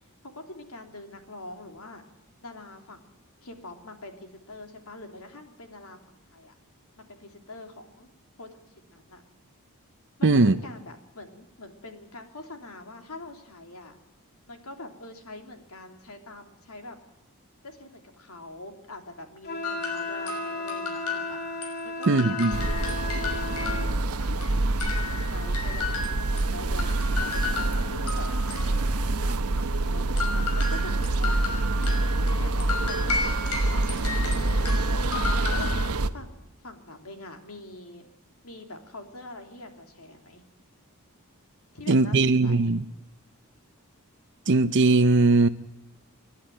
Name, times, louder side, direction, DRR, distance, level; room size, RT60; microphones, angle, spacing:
voice 1, 0.3-2.0 2.4-3.1 3.4-6.6 7.1-8.1 8.4-8.5 8.8-9.2 10.2-14.0 14.5-17.0 17.6-21.4 21.8-24.5 24.9-28.6 29.0-31.9 32.4-34.8 35.3-35.7 36.1-38.0 38.4-40.4 41.7-42.8, left 2 dB, 70° left, 3.1 m, -44 dB
voice 2, 10.2-10.5 22.1-22.6 41.9-42.8 44.5-45.5, right 3 dB, 55° right, 0.7 m, -20 dB
Wind instrument woodwind instrument, 19.4-23.9, left 2 dB, 45° left, 2.7 m, -35 dB
sound 1, 19.6-21.8 22.0-26.4 26.8-29.2 30.2-35.9, left 3 dB, 90° left, 6.0 m, -34 dB
sound 2, 22.5-36.1, right 2 dB, 80° right, 1.0 m, -26 dB
29.5 x 11.5 x 9.0 m
head